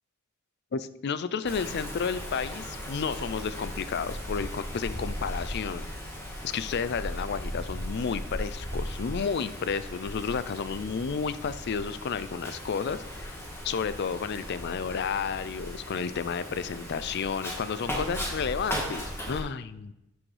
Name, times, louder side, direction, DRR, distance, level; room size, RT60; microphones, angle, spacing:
voice 1, 0.7-5.9 6.4-13.4 13.6-19.9, left 6 dB, 55° left, 14 dB, 0.4 m, -32 dB
Wind, 1.4-19.4, equal, 15° left, 1.5 m, -37 dB
10.5 x 6.2 x 3.3 m, 0.90 s
head